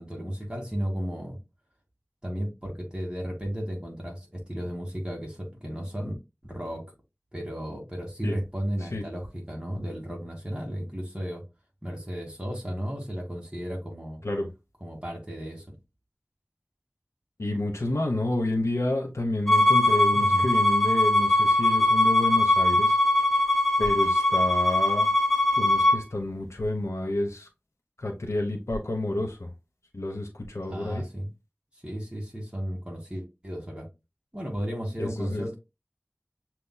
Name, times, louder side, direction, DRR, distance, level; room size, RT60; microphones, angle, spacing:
voice 1, 0.0-1.4 2.2-6.1 6.4-6.8 7.3-11.4 11.8-14.2 14.8-15.6 20.1-20.5 30.7-31.3 31.8-33.9 34.3-35.6, equal, 20° right, 2.1 m, -34 dB
voice 2, 17.4-23.0 23.8-25.1 25.6-27.5 28.0-29.5 29.9-31.0 35.0-35.5, left 1 dB, 80° left, 1.0 m, -29 dB
Bowed string instrument, 19.5-26.0, left 1 dB, 5° left, 1.8 m, -21 dB
6.7 x 3.0 x 2.2 m
wide cardioid pair, 40°, 5 cm